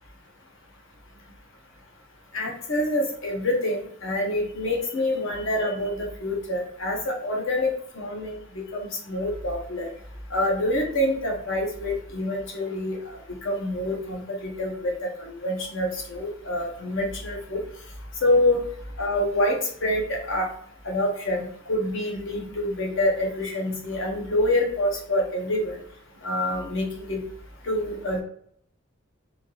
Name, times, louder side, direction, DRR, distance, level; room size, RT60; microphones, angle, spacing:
voice 1, 2.3-9.9 10.3-17.6 18.2-18.6 19.0-20.5 20.8-25.8 26.2-27.2 27.6-28.2, left 1 dB, 65° left, 0 dB, 0.9 m, -26 dB
3.2 x 2.8 x 2.8 m, 0.66 s
head